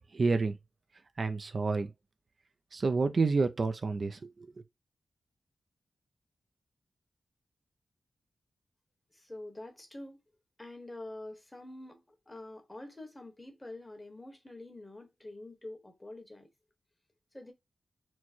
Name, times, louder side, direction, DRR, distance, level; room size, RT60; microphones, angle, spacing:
voice 1, 0.1-0.6 1.2-1.9 2.7-4.5, right 4 dB, 45° right, 0.4 m, -29 dB
voice 2, 9.1-10.2 10.6-16.5 17.3-17.5, left 2 dB, 15° left, 1.2 m, -46 dB
4.5 x 2.1 x 4.3 m
wide cardioid pair, 95°, 0 cm